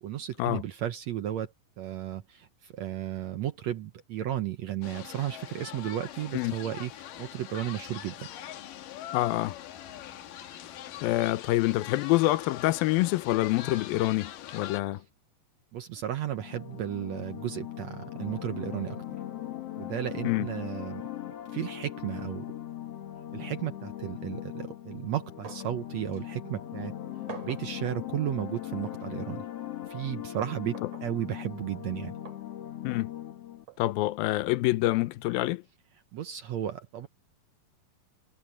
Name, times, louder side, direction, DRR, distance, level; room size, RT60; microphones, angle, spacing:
voice 1, 0.0-8.3 15.7-19.0 19.8-21.0 21.5-22.4 23.3-26.9 27.4-29.4 29.9-30.8 31.0-32.1 36.1-37.1, right 11 dB, 70° right, 1.7 m, -34 dB
newjersey OC wonderlando, 4.8-14.8, left 12 dB, 75° left, 2.8 m, -43 dB
voice 2, 9.1-9.6 11.0-15.0 20.2-20.5 32.8-33.1 33.8-35.6, left 17 dB, 90° left, 2.6 m, -26 dB
sound 1, 16.3-33.7, left 12 dB, 50° left, 2.2 m, -39 dB
sound 2, 25.4-25.8 26.1-26.2 27.3-27.7 28.9-29.0 30.7-31.1 32.3-32.4 33.7-33.8, right 8 dB, 50° right, 4.2 m, -45 dB
omnidirectional pair, 4.1 m